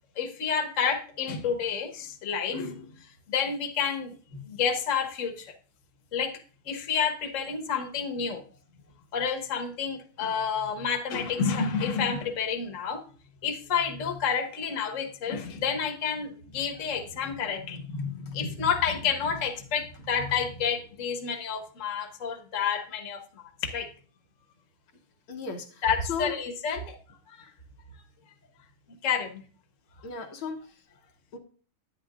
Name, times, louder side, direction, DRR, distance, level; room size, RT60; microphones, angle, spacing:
voice 1, 0.1-5.5 6.1-6.4 6.6-8.4 9.1-13.0 13.4-23.2 23.6-23.9 25.8-27.0 27.3-27.5 29.0-29.4, left 6 dB, 40° left, 5 dB, 1.4 m, -29 dB
voice 2, 25.3-26.4 30.0-30.6 31.3-31.4, left 5 dB, 70° left, 3 dB, 1.8 m, -36 dB
11.0 x 9.5 x 2.5 m, 0.40 s
omnidirectional pair, 2.3 m